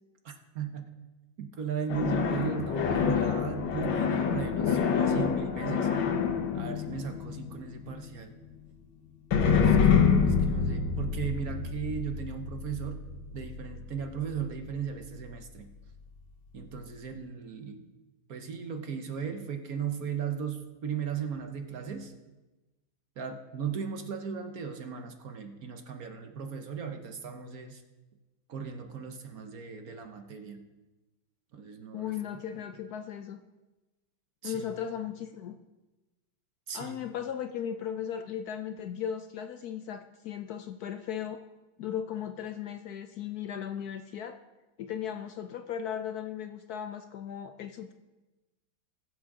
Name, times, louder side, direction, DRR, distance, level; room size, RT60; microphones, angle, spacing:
voice 1, 0.2-1.0 1.4-5.9 6.5-8.3 9.5-13.0 13.3-15.7 16.5-17.9 18.3-22.1 23.2-27.8 28.5-30.6 31.5-32.1 32.5-32.6 34.4-34.7 36.7-36.9, right 7 dB, 55° right, 6 dB, 1.2 m, -37 dB
sound 1, 1.9-7.8 9.3-14.6, left 6 dB, 85° left, 1.8 m, -27 dB
voice 2, 31.9-33.4 34.4-35.6 36.7-41.4 41.8-44.4 44.8-47.9, left 9 dB, 70° left, 8 dB, 1.0 m, -37 dB
20.5 x 7.3 x 3.8 m, 1.1 s
omnidirectional pair, 2.0 m